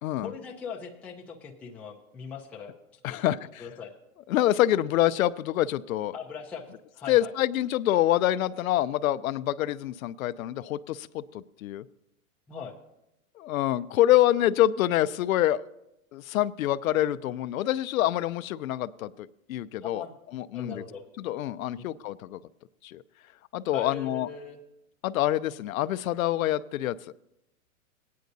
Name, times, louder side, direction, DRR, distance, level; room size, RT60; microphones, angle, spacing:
voice 1, 0.2-2.7 3.1-3.3 3.6-3.9 6.1-7.3 12.5-12.8 19.8-20.1 20.5-21.0 21.8-21.9 23.7-24.6, left 6 dB, 5° left, -1 dB, 0.4 m, -40 dB
voice 2, 3.0-3.6 4.3-6.1 7.1-11.8 13.4-15.6 16.1-20.0 20.3-20.8 21.2-22.4 22.8-23.0 23.5-24.3 25.0-27.0, left 13 dB, 75° left, 15 dB, 0.5 m, -26 dB
18.0 x 9.4 x 2.6 m, 0.86 s
hypercardioid pair, 130°, 43 cm